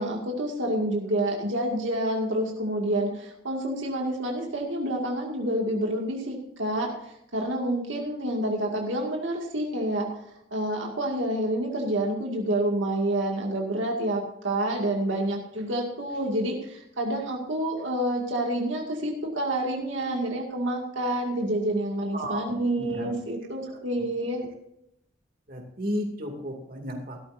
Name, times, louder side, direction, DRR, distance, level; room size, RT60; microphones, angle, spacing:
voice 1, 0.0-10.1 10.5-24.4, right 1 dB, 80° right, 0 dB, 2.2 m, -28 dB
voice 2, 22.1-23.1 23.6-24.1 25.5-27.2, equal, 50° right, 1 dB, 2.6 m, -34 dB
16.0 x 13.0 x 2.7 m, 0.79 s
head